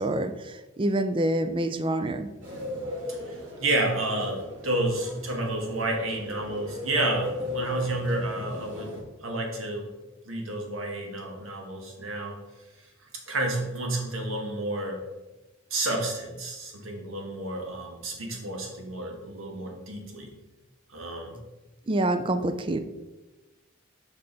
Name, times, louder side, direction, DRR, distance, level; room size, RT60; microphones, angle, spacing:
voice 1, 0.0-2.3 21.9-22.8, right 1 dB, 25° right, 9 dB, 0.4 m, -27 dB
sound 1, 2.4-9.0, left 1 dB, 65° right, 2.5 m, -37 dB
voice 2, 3.1-8.9 9.2-9.9 10.2-12.4 13.3-15.0 15.7-20.3 20.9-21.4, right 1 dB, 85° right, 1 dB, 1.6 m, -30 dB
6.6 x 5.3 x 4.0 m, 1.1 s
head